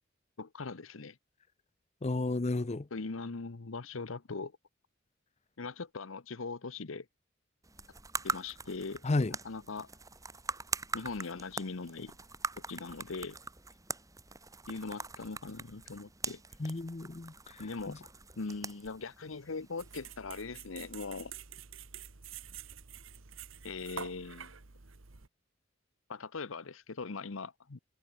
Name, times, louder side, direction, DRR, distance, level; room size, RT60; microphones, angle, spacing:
voice 1, 0.4-1.2 2.9-4.6 5.6-7.1 8.2-9.0 9.4-9.9 10.9-12.1 12.7-13.4 14.7-16.7 17.6-18.1 18.4-21.3 23.6-24.5 26.1-27.8, left 4 dB, 90° left, 0.9 m, -40 dB
voice 2, 2.0-2.9 9.0-9.3 16.6-18.0, left 2 dB, 35° left, 0.6 m, -33 dB
sound 1, 7.6-20.1, right 3 dB, 15° right, 4.3 m, -42 dB
sound 2, 19.8-25.3, right 7 dB, 85° right, 1.4 m, -48 dB
head